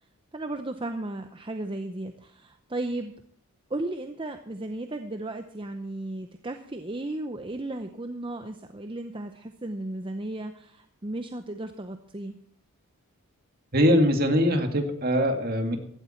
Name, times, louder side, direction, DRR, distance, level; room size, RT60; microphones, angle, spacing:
voice 1, 0.3-3.1 3.7-12.4, right 2 dB, 25° right, 7 dB, 0.7 m, -35 dB
voice 2, 13.7-15.8, equal, 45° right, 5 dB, 2.2 m, -22 dB
15.5 x 12.0 x 4.4 m, 0.64 s
head